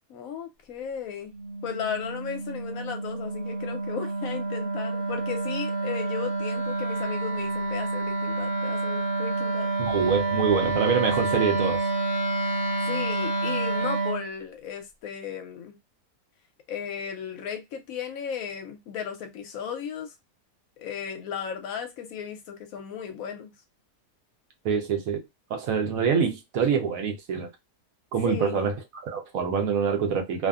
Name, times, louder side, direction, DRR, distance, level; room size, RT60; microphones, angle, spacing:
voice 1, 0.1-1.3 1.6-9.7 12.8-15.8 16.7-20.1 20.8-23.5 28.2-28.6, left 8 dB, 70° left, 0.9 m, -35 dB
Wind instrument woodwind instrument, 1.3-14.2, right 2 dB, 45° right, 0.8 m, -28 dB
voice 2, 9.8-11.9 24.6-25.2 25.5-27.5 28.1-28.8 29.0-30.5, right 6 dB, 70° right, 1.0 m, -25 dB
2.6 x 2.5 x 2.3 m
omnidirectional pair, 1.6 m